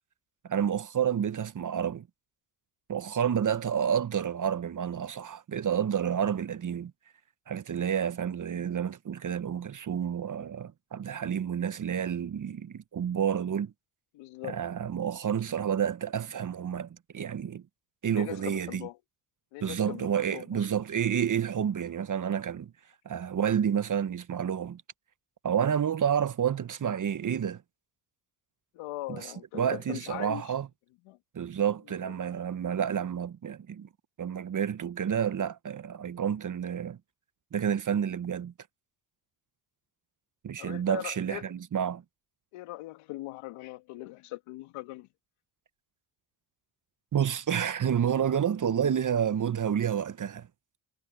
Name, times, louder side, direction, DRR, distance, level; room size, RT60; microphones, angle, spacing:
voice 1, 0.4-2.1 2.9-6.9 7.5-13.7 14.4-17.6 18.0-18.9 19.6-22.7 23.0-24.8 25.4-27.6 29.1-29.3 29.5-30.7 31.3-33.9 34.2-37.0 37.5-38.5 40.4-42.0 47.1-50.5, right 8 dB, 40° right, 1.0 m, -29 dB
voice 2, 14.1-14.6 18.1-19.0 19.5-20.7 28.7-30.6 31.1-31.2 32.1-32.2 40.6-41.5 42.5-45.1, left 18 dB, 85° left, 1.6 m, -40 dB
supercardioid pair, 60°, 50 cm